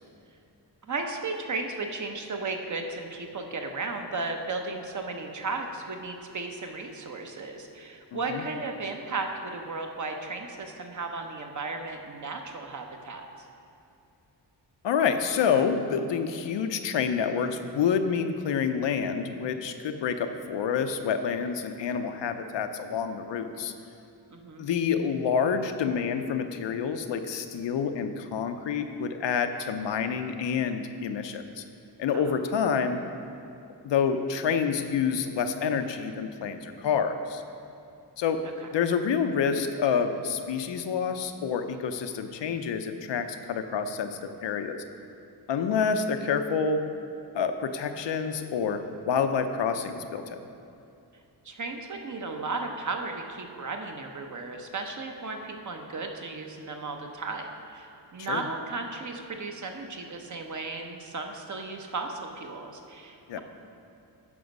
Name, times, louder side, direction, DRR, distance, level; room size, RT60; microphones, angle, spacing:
voice 1, 0.8-13.5 24.3-24.7 32.1-32.4 51.4-63.4, right 3 dB, 45° right, 3 dB, 0.9 m, -35 dB
voice 2, 8.1-8.4 14.8-23.7 24.6-31.6 32.0-33.0 33.8-37.4 38.2-38.4 38.7-44.8 45.5-46.8 47.3-50.4 58.2-58.4 63.3-63.4, left 6 dB, 85° left, 7 dB, 0.7 m, -28 dB
9.8 x 5.9 x 5.3 m, 2.7 s
wide cardioid pair, 125°, 42 cm